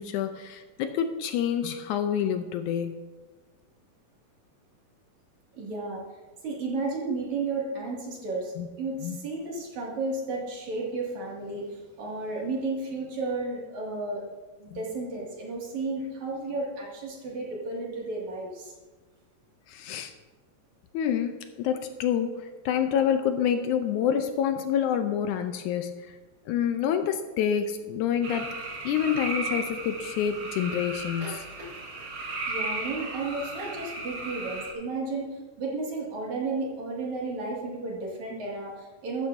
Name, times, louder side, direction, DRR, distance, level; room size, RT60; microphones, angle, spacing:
voice 1, 0.0-3.0 8.6-8.7 9.0-9.2 14.7-14.8 19.7-20.1 20.9-26.2 26.5-28.5 28.8-31.5, left 8 dB, 80° left, 8 dB, 2.0 m, -27 dB
voice 2, 5.5-6.0 6.4-14.2 14.6-18.7 32.5-39.3, right 3 dB, 60° right, -3 dB, 3.6 m, -33 dB
sound 1, 28.2-34.7, right 3 dB, 45° right, 2.1 m, -35 dB
14.5 x 12.5 x 2.7 m, 1.3 s
omnidirectional pair, 3.8 m